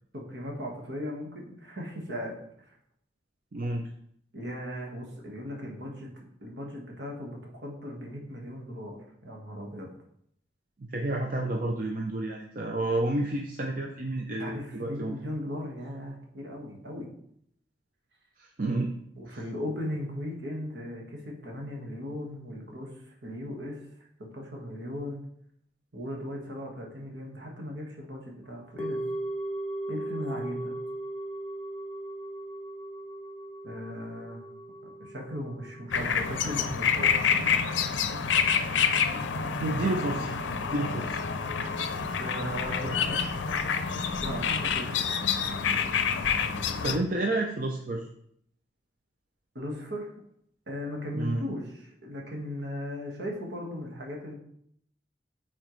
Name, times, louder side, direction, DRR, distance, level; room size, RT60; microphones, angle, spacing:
voice 1, 0.1-2.3 4.3-6.1 6.4-9.9 14.4-17.1 19.2-22.9 23.2-23.8 24.2-25.2 25.9-29.0 29.9-30.8 33.6-34.4 35.0-37.5 42.2-43.3 44.2-44.9 49.5-50.1 50.7-54.3, equal, 70° right, -1 dB, 1.5 m, -37 dB
voice 2, 3.5-3.9 10.8-15.1 18.4-19.0 19.3-19.4 39.6-40.4 40.7-41.2 46.8-48.1 51.1-51.4, right 2 dB, 45° right, 1 dB, 0.5 m, -30 dB
sound 1, 28.8-39.1 39.3-39.4, right 1 dB, 10° left, 0.3 m, -38 dB
sound 2, 35.9-47.0, left 6 dB, 80° left, 0.5 m, -28 dB
8.9 x 4.2 x 3.1 m, 0.70 s
head